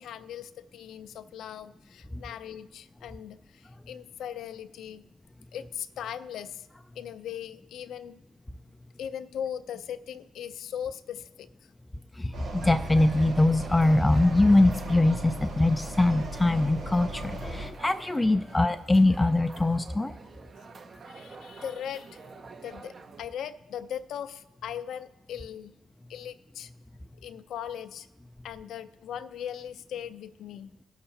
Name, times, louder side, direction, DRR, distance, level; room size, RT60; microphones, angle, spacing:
voice 1, 0.0-5.0 5.5-6.7 6.9-8.2 9.0-11.7 21.1-22.2 22.6-25.7 26.1-26.7 27.2-28.1 28.4-30.7, left 9 dB, 75° left, 11 dB, 0.5 m, -39 dB
voice 2, 12.2-20.1, left 2 dB, 15° left, 9 dB, 0.3 m, -23 dB
sound 1, 12.3-17.7, right 1 dB, 70° right, 1.9 m, -37 dB
sound 2, 12.6-23.2, right 4 dB, 45° right, 0.6 m, -47 dB
19.5 x 6.6 x 2.8 m, 1.1 s
cardioid pair, 90°, 0 cm